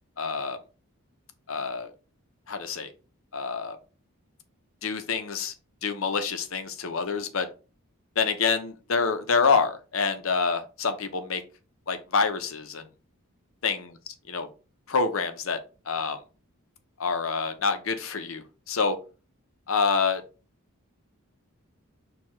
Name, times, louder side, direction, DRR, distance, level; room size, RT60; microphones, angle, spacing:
voice 1, 0.2-0.6 1.5-1.9 2.5-2.9 3.3-3.8 4.8-5.5 5.8-7.5 8.2-11.4 11.9-12.9 13.6-13.9 14.3-14.5 14.9-15.6 15.9-16.2 17.0-19.0 19.7-20.2, left 5 dB, 70° left, 9 dB, 0.7 m, -27 dB
4.6 x 2.4 x 4.3 m, 0.34 s
head